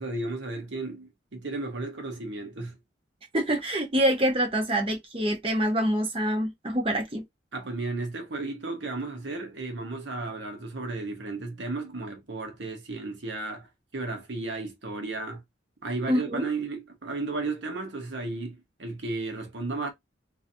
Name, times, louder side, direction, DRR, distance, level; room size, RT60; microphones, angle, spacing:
voice 1, 0.0-2.8 7.5-15.4 15.8-19.9, right 3 dB, 70° right, 1.0 m, -34 dB
voice 2, 3.3-7.2 16.1-16.5, right 1 dB, 30° right, 0.9 m, -26 dB
3.9 x 2.6 x 2.7 m
head